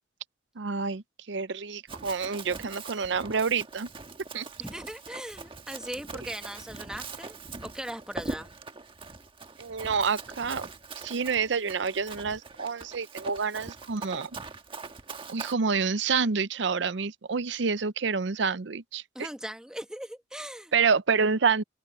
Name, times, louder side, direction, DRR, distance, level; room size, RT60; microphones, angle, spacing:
voice 1, 0.6-3.9 4.3-4.5 9.6-10.6 11.0-14.3 15.3-19.3 20.7-21.6, right 5 dB, 70° right, 0.6 m, -28 dB
Run, 1.9-15.5, right 3 dB, 30° right, 1.4 m, -42 dB
voice 2, 4.6-8.5 19.1-20.7, equal, 5° right, 1.3 m, -39 dB
open air
head